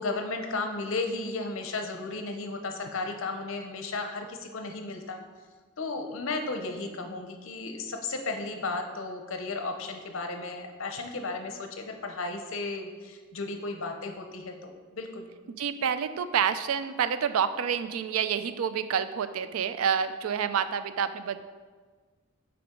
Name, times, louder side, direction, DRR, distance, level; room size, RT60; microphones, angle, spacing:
voice 1, 0.0-5.2 5.8-15.3, left 3 dB, 70° left, 5 dB, 0.7 m, -34 dB
voice 2, 15.6-21.4, right 7 dB, 85° right, 12 dB, 0.4 m, -28 dB
6.9 x 4.8 x 3.7 m, 1.4 s
head